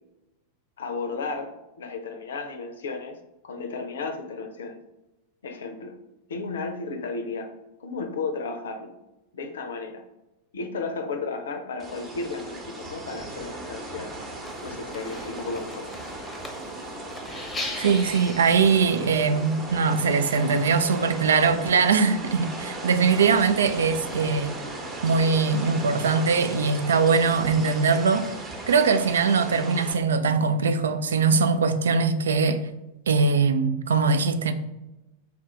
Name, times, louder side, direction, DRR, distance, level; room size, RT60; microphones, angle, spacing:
voice 1, 0.8-3.2 3.4-4.8 5.4-6.0 6.3-7.5 7.8-8.9 9.3-10.0 10.5-14.1 14.6-15.9, left 4 dB, 65° left, 0.5 m, -33 dB
sound 1, 11.8-29.9, right 2 dB, 20° right, 0.9 m, -37 dB
sound 2, 14.5-19.5, left 2 dB, 15° left, 0.8 m, -39 dB
voice 2, 17.7-24.5 25.0-28.3 28.7-32.7 33.1-34.5, right 5 dB, 65° right, 0.3 m, -21 dB
3.5 x 2.4 x 4.3 m
figure-of-eight pair, 90°, 0 cm